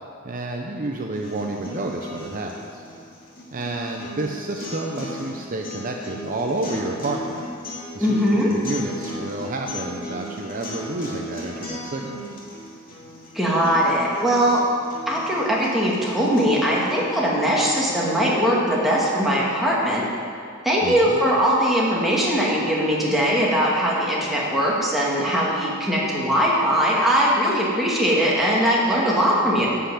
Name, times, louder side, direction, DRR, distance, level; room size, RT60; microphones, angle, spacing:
voice 1, 0.2-2.8 3.5-7.4 7.9-8.2 8.5-12.2 20.8-21.2, right 2 dB, 40° right, 1 dB, 0.7 m, -30 dB
sound 1, 1.2-17.2, left 1 dB, 45° left, 2.6 m, -36 dB
voice 2, 8.0-8.5 13.3-14.6 15.1-20.1 20.6-29.7, equal, ahead, -6 dB, 2.2 m, -20 dB
11.5 x 5.8 x 8.5 m, 2.4 s
head